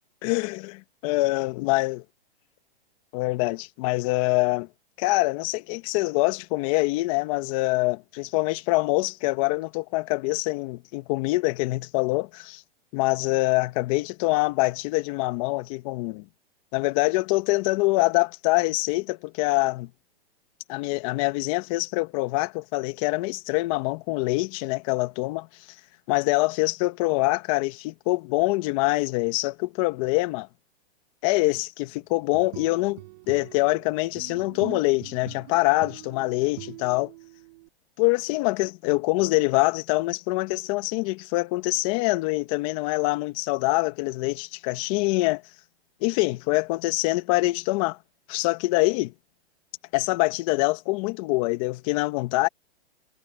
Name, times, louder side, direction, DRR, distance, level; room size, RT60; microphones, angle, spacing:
voice 1, 0.2-2.0 3.1-4.7 5.0-12.6 12.9-16.3 16.7-19.9 20.7-25.7 26.1-30.5 31.2-37.1 38.0-45.4 46.0-48.0 48.3-49.1 49.9-52.5, left 22 dB, 30° left, 1.7 m, -25 dB
sound 1, 32.1-37.7, right 21 dB, 40° right, 7.9 m, -43 dB
hypercardioid pair, 155°, 32 cm